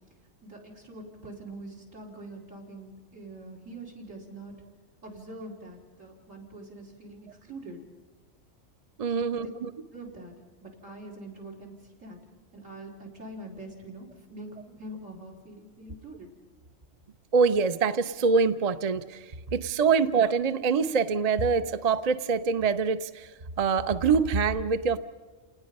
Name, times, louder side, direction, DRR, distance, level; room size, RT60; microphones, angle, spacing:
voice 1, 0.4-4.5 5.0-7.8 9.1-9.5 9.9-10.3 10.6-12.2 12.5-16.3, right 1 dB, 70° right, 2 dB, 4.4 m, -44 dB
voice 2, 9.0-9.7 17.3-23.3 23.6-25.0, right 5 dB, 40° right, 12 dB, 0.6 m, -25 dB
29.0 x 19.0 x 5.4 m, 1.4 s
omnidirectional pair, 1.4 m